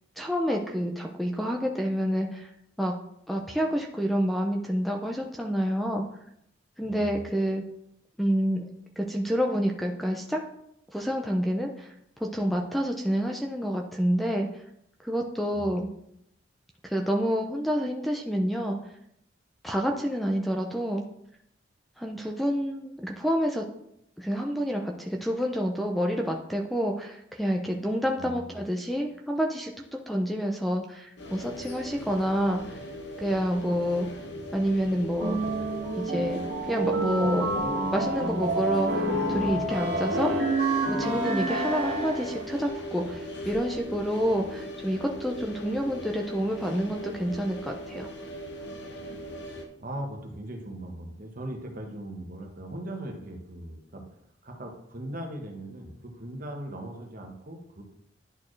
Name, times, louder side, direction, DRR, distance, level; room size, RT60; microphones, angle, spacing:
voice 1, 0.2-2.5 2.8-2.9 3.3-6.0 6.8-7.6 8.2-8.7 9.0-10.4 10.9-11.9 12.2-14.5 15.0-15.9 16.8-18.8 19.6-21.0 22.0-23.7 24.2-32.8 33.2-34.1 34.5-35.4 36.0-37.5 37.9-39.0 39.3-40.4 40.9-48.1, equal, ahead, 2 dB, 0.4 m, -28 dB
voice 2, 6.8-7.2 15.5-15.7 28.2-28.5 49.4-54.1 54.4-57.8, right 1 dB, 50° right, 2 dB, 1.2 m, -39 dB
sound 1, 31.2-49.7, equal, 65° left, 1.0 m, -39 dB
sound 2, 35.2-42.5, right 1 dB, 70° right, 1.6 m, -28 dB
10.5 x 4.3 x 3.2 m, 0.76 s
head